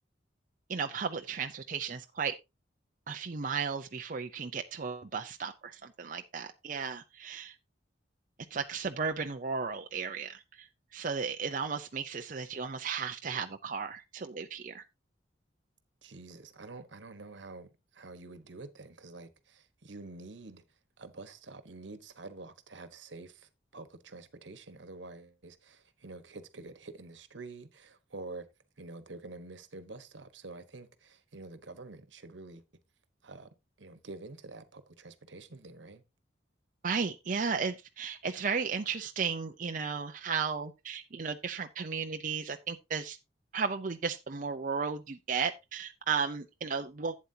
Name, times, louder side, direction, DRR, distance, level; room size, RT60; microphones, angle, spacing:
voice 1, 0.7-2.3 3.1-7.5 8.5-10.7 10.9-14.8 36.8-43.2 43.5-47.1, right 5 dB, 45° right, 0.6 m, -34 dB
voice 2, 16.0-20.6 21.0-28.5 28.8-32.6 33.2-33.5 33.8-36.0, right 3 dB, 80° right, 1.2 m, -47 dB
11.5 x 8.4 x 2.7 m
head